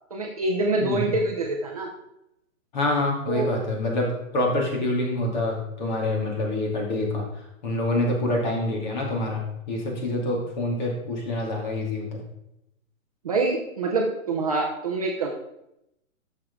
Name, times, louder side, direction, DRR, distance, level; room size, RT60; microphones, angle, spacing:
voice 1, 0.1-1.9 3.3-3.5 13.2-15.3, right 2 dB, 25° right, 0 dB, 0.7 m, -25 dB
voice 2, 0.8-1.1 2.7-7.2 7.6-12.2, left 1 dB, 35° left, -1 dB, 2.3 m, -26 dB
10.5 x 6.7 x 3.7 m, 0.83 s
hypercardioid pair, 170°, 41 cm